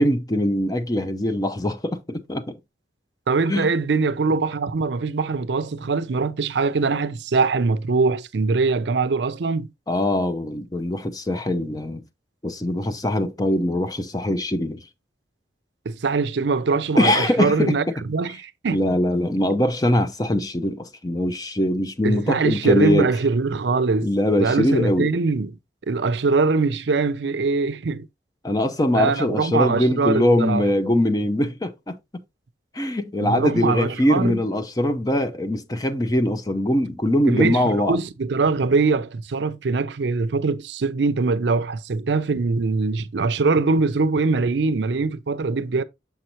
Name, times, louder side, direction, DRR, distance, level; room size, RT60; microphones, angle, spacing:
voice 1, 0.0-2.6 3.5-3.7 9.9-12.0 12.4-14.8 17.0-17.8 18.7-23.1 24.0-25.1 28.4-32.2 32.7-38.0, left 1 dB, 20° left, 0.6 m, -22 dB
voice 2, 3.3-9.7 15.9-18.8 22.0-24.1 24.4-25.6 25.9-28.1 28.9-30.6 33.2-34.4 37.3-45.8, right 4 dB, 70° right, 0.5 m, -22 dB
7.0 x 5.6 x 2.9 m
head